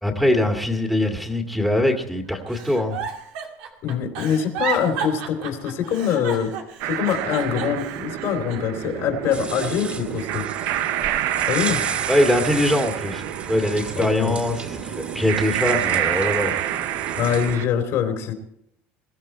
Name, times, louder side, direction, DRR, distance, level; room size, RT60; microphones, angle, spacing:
voice 1, 0.0-3.0 12.1-16.6, left 1 dB, ahead, 2 dB, 2.1 m, -22 dB
Giggle, 2.5-8.8 9.2-10.2 10.6-11.8 12.3-12.6, right 6 dB, 90° right, 2.4 m, -33 dB
voice 2, 3.8-6.6 6.8-10.5 11.5-11.8 14.0-14.3 17.1-18.3, left 8 dB, 60° left, 5 dB, 2.9 m, -24 dB
sound 1, 6.8-17.7, right 12 dB, 70° right, 0.8 m, -28 dB
sound 2, 9.3-17.6, right 4 dB, 25° right, 2.6 m, -35 dB
22.0 x 13.5 x 4.5 m, 0.73 s
supercardioid pair, 115°, 5 cm